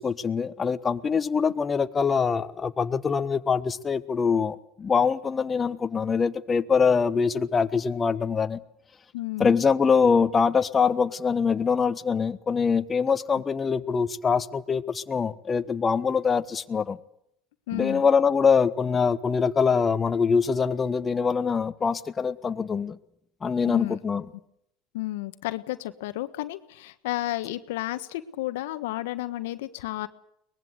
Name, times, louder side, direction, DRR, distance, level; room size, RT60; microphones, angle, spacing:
voice 1, 0.0-8.6 9.4-17.0 17.7-23.0 23.4-24.2, left 5 dB, 25° left, 1.2 m, -24 dB
voice 2, 9.1-9.6 17.7-18.0 23.6-24.0 24.9-30.1, left 16 dB, 75° left, 1.3 m, -32 dB
23.5 x 20.0 x 8.1 m
hypercardioid pair, 80°, 0 cm